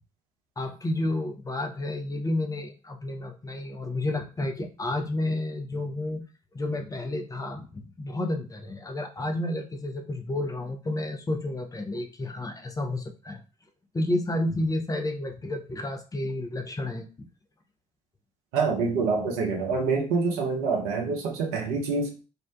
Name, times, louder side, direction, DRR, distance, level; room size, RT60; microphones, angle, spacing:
voice 1, 0.6-6.2 6.5-13.4 13.9-17.3, left 1 dB, 20° left, 4 dB, 0.5 m, -31 dB
voice 2, 18.5-22.1, right 4 dB, 75° right, 2 dB, 0.6 m, -26 dB
2.4 x 2.1 x 2.4 m, 0.33 s
figure-of-eight pair, 45°, 20 cm